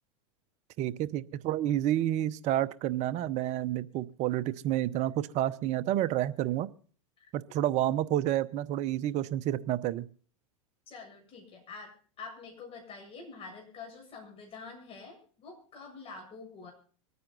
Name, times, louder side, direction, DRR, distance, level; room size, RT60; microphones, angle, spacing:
voice 1, 0.8-6.7 7.3-10.1, right 13 dB, 40° right, 15 dB, 0.8 m, -29 dB
voice 2, 10.9-11.9 12.2-16.7, left 4 dB, 35° left, 1 dB, 7.5 m, -46 dB
24.5 x 9.5 x 4.0 m, 0.42 s
hypercardioid pair, 110°, 17 cm